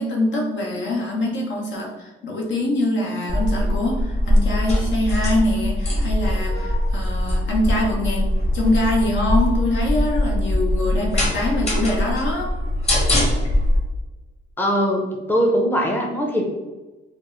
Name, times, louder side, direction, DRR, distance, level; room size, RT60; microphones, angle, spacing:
voice 1, 0.0-12.5, left 1 dB, 70° left, -1 dB, 1.0 m, -24 dB
sound 1, 3.3-13.8, left 1 dB, 30° left, 1.3 m, -21 dB
voice 2, 14.6-16.5, equal, 10° left, 1 dB, 0.6 m, -21 dB
4.1 x 2.0 x 3.1 m, 1.1 s
cardioid pair, 90°, 20 cm